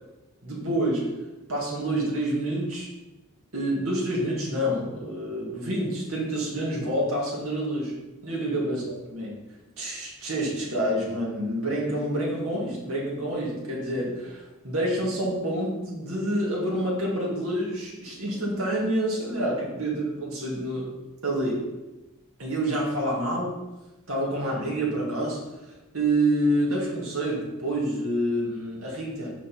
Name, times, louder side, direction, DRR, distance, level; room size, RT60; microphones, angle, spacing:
voice 1, 0.4-1.1 1.5-2.9 3.5-7.9 8.2-8.8 9.1-9.4 9.8-20.9 21.2-21.7 22.4-23.5 24.1-25.4 25.9-29.3, right 1 dB, 65° right, -3 dB, 2.3 m, -27 dB
5.5 x 5.0 x 5.7 m, 1.0 s
head